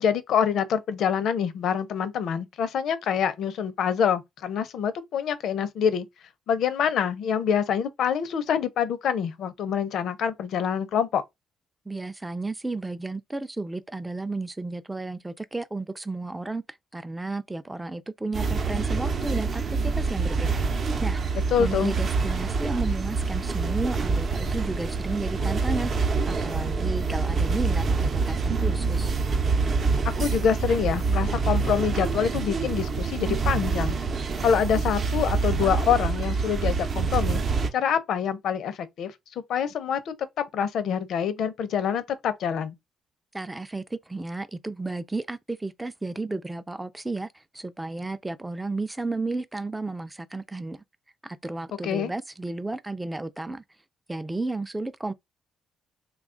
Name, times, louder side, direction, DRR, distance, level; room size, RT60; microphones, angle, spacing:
voice 1, 0.0-6.1 6.5-11.2 21.5-21.9 30.2-34.0 34.4-37.4 37.7-39.1 39.5-42.8 51.8-52.1, left 7 dB, 75° left, 0.6 m, -26 dB
voice 2, 11.9-20.6 21.0-25.9 26.3-29.1 43.3-47.3 47.5-50.8 51.2-53.6 54.1-55.1, right 2 dB, 10° right, 0.4 m, -33 dB
sound 1, 18.3-37.7, right 4 dB, 45° right, 0.7 m, -26 dB
3.1 x 2.3 x 3.7 m
cardioid pair, 90°, 0 cm